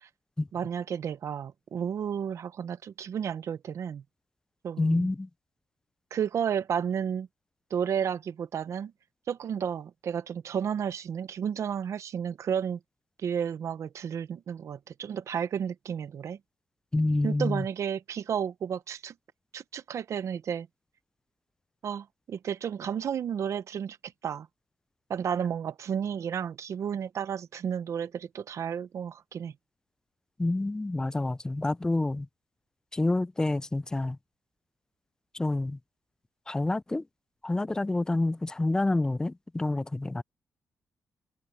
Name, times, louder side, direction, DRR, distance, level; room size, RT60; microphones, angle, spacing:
voice 1, 0.5-4.0 4.6-5.1 6.1-7.3 7.7-8.9 9.3-12.8 13.2-16.4 17.2-19.1 19.5-20.7 21.8-24.0 24.2-24.5 25.1-29.5, right 8 dB, 60° right, 0.8 m, -32 dB
voice 2, 4.8-5.3 16.9-17.6 30.4-32.3 32.9-34.2 35.3-35.8 36.5-37.0 37.4-40.2, left 2 dB, 10° left, 0.3 m, -28 dB
cardioid pair, 130°, 6 cm